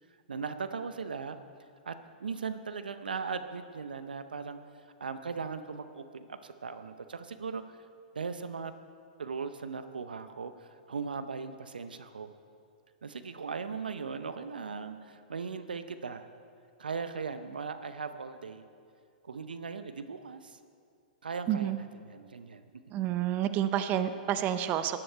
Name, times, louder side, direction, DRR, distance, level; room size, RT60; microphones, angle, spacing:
voice 1, 0.3-1.4 1.9-4.6 5.0-7.6 8.1-8.7 9.2-12.3 13.0-16.3 16.8-18.7 19.2-20.6 21.2-22.6 23.0-23.1, right 5 dB, 85° right, 10 dB, 0.7 m, -38 dB
voice 2, 21.5-21.8 22.9-25.0, right 11 dB, 35° right, 11 dB, 0.7 m, -29 dB
15.5 x 11.0 x 4.6 m, 2.3 s
hypercardioid pair, 115°, 5 cm